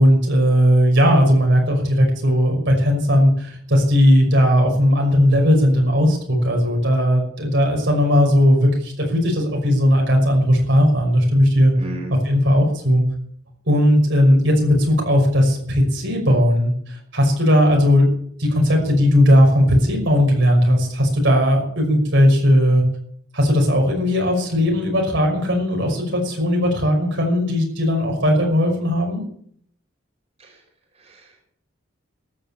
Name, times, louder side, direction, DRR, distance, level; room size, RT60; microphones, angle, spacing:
voice 1, 0.0-11.7 12.2-13.0 13.7-18.1 18.4-22.8 23.3-29.2, equal, 60° right, 1 dB, 5.7 m, -17 dB
voice 2, 11.8-12.1 30.4-30.6 30.9-31.4, equal, 30° right, -1 dB, 5.1 m, -35 dB
14.5 x 11.5 x 7.2 m, 0.63 s
head